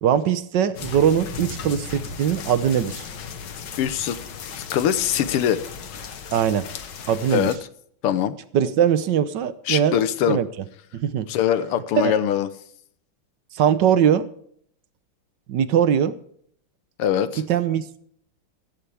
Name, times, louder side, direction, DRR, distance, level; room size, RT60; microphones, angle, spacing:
voice 1, 0.0-3.0 6.3-6.7 7.1-7.5 8.5-10.0 10.3-10.5 10.9-11.3 12.0-12.1 13.5-14.3 15.5-16.2 17.5-18.0, right 9 dB, 65° right, 14 dB, 1.3 m, -21 dB
sound 1, 0.7-7.6, left 6 dB, 55° left, 1.7 m, -36 dB
voice 2, 3.8-4.2 4.6-5.6 7.3-7.6 8.0-8.4 9.7-10.4 11.3-12.5 17.0-17.4, left 10 dB, 85° left, 14 dB, 1.9 m, -22 dB
15.5 x 14.5 x 3.4 m, 0.64 s
omnidirectional pair, 2.4 m